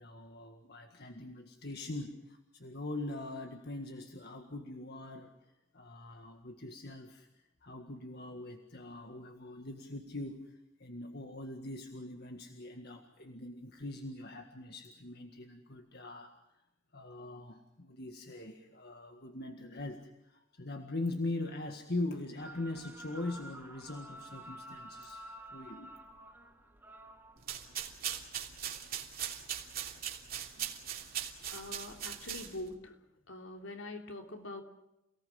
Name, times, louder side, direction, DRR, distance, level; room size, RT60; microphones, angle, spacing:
voice 1, 0.0-16.3 16.9-25.9, left 2 dB, 50° left, 5 dB, 1.9 m, -42 dB
sound 1, 22.4-27.9, right 1 dB, 10° right, 2.6 m, -51 dB
sound 2, 27.4-32.7, right 9 dB, 45° right, 3.1 m, -40 dB
voice 2, 31.5-32.9 33.3-34.6, left 2 dB, 65° left, 4 dB, 3.3 m, -44 dB
29.0 x 18.5 x 7.6 m, 0.90 s
head